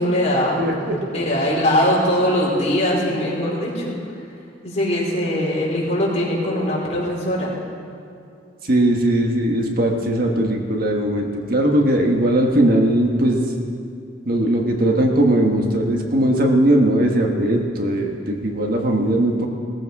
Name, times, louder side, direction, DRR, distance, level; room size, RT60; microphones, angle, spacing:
voice 1, 0.0-0.6 1.1-3.9 4.6-7.5, left 1 dB, 40° left, -5 dB, 4.7 m, -21 dB
voice 2, 0.6-1.0 8.7-13.4 14.2-19.5, right 1 dB, 55° right, 1 dB, 1.5 m, -19 dB
18.5 x 14.5 x 4.9 m, 2.5 s
head